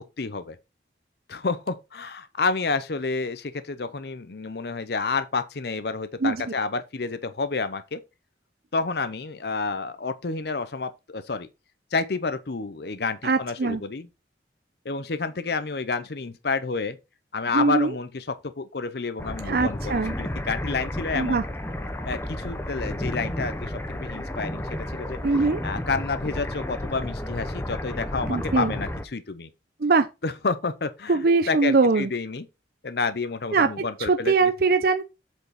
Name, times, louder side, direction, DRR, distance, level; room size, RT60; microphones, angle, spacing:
voice 1, 0.2-0.6 1.3-8.0 8.7-11.5 11.9-14.1 14.8-17.0 17.3-21.4 22.1-25.2 25.6-29.5 30.2-31.2 31.5-32.5 32.8-34.5, left 4 dB, 60° left, 0.7 m, -29 dB
voice 2, 13.2-13.8 17.5-17.9 19.5-20.1 21.1-21.4 25.2-25.6 28.3-28.7 29.8-30.1 31.1-32.1 33.5-35.0, right 4 dB, 55° right, 0.6 m, -22 dB
sound 1, 19.2-29.0, left 1 dB, 15° left, 0.8 m, -32 dB
8.0 x 4.7 x 4.2 m
head